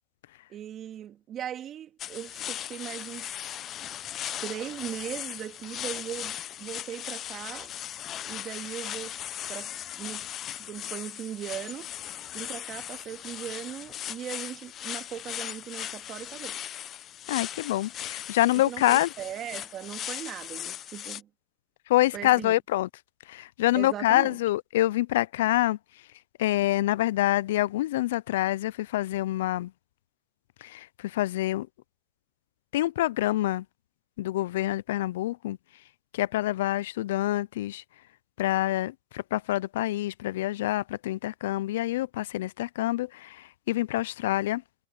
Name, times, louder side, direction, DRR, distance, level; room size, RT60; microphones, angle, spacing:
voice 1, 0.5-3.6 4.4-7.7 8.3-9.2 9.5-10.3 10.5-11.9 12.3-16.6 18.5-21.3 22.1-22.6 23.7-24.4, right 10 dB, 30° right, 2.2 m, -39 dB
sound 1, 2.0-21.2, left 11 dB, 30° left, 0.8 m, -38 dB
voice 2, 17.3-19.1 21.9-22.9 23.3-25.8 26.4-29.7 30.6-31.7 32.7-33.6 34.2-35.6 36.1-37.8 38.4-44.6, left 15 dB, 70° left, 0.4 m, -26 dB
hypercardioid pair, 125°, 0 cm